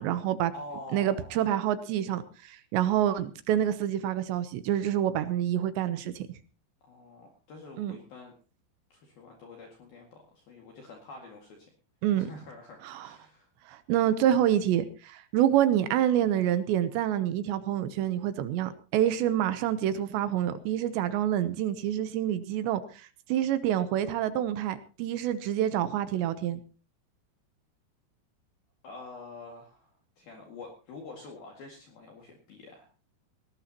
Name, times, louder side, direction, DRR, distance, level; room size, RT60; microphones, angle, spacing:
voice 1, 0.0-0.5 0.9-6.3 7.8-8.0 12.0-12.3 12.8-13.1 13.7-26.6, right 11 dB, 80° right, 12 dB, 2.7 m, -27 dB
voice 2, 0.5-1.4 6.8-8.3 8.9-11.7 12.1-13.5 28.8-32.9, left 3 dB, 55° left, 1 dB, 3.3 m, -47 dB
18.5 x 18.0 x 2.9 m, 0.35 s
omnidirectional pair, 5.9 m